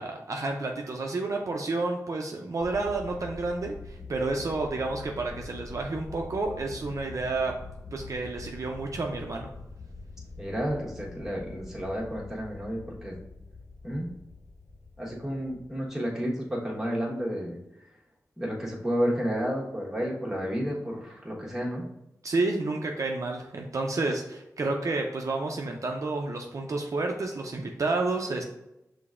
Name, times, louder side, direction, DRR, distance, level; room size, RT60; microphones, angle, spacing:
voice 1, 0.0-7.5 7.9-9.5 22.2-28.4, right 3 dB, 55° right, 1 dB, 0.5 m, -30 dB
sound 1, 2.6-15.8, left 3 dB, 20° left, 0.5 m, -44 dB
voice 2, 10.4-13.2 13.8-14.1 15.0-17.6 18.4-21.8, equal, 10° right, -4 dB, 1.2 m, -31 dB
5.9 x 3.2 x 2.5 m, 0.88 s
wide cardioid pair, 85°, 7 cm